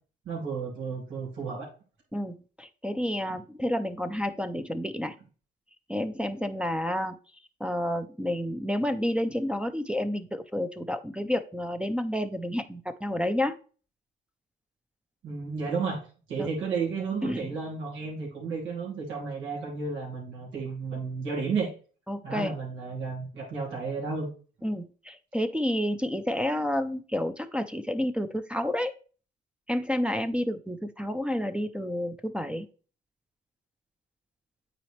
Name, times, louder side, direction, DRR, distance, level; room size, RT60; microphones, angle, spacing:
voice 1, 0.2-1.7 15.2-16.0 16.3-21.7 22.2-24.3, right 5 dB, 80° right, -3 dB, 2.8 m, -32 dB
voice 2, 2.1-5.2 5.9-7.2 7.6-13.5 16.4-16.5 17.2-17.5 22.1-22.5 24.6-28.9 29.7-32.7, left 1 dB, 5° right, 6 dB, 0.6 m, -30 dB
8.9 x 4.1 x 3.2 m, 0.38 s
cardioid pair, 90°, 20 cm